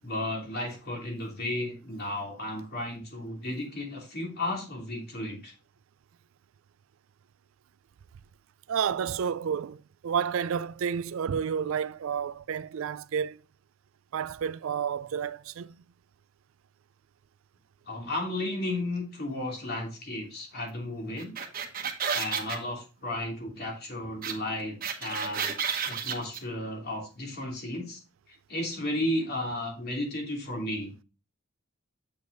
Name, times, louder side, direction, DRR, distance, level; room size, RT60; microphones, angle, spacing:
voice 1, 0.0-5.5 17.9-21.3 22.0-25.5 25.8-28.0 28.3-30.9, left 1 dB, 50° left, 2.8 m, -34 dB
voice 2, 8.7-13.4 14.1-15.8, right 7 dB, 70° right, 0.4 m, -30 dB
sound 1, 21.2-22.6 24.2-24.3 24.6-26.4, right 7 dB, 45° right, 1.2 m, -31 dB
8.0 x 6.9 x 2.6 m
head